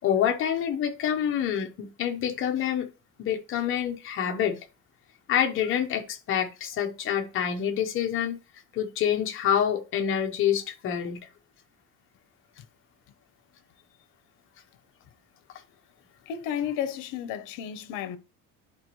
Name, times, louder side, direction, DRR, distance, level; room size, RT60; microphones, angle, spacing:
voice 1, 0.0-2.9 3.2-4.6 5.3-8.4 8.7-11.2, left 9 dB, 40° left, 0.9 m, -27 dB
voice 2, 16.3-18.2, left 9 dB, 75° left, 0.9 m, -32 dB
11.0 x 4.1 x 3.1 m
cardioid pair, 175°, 32 cm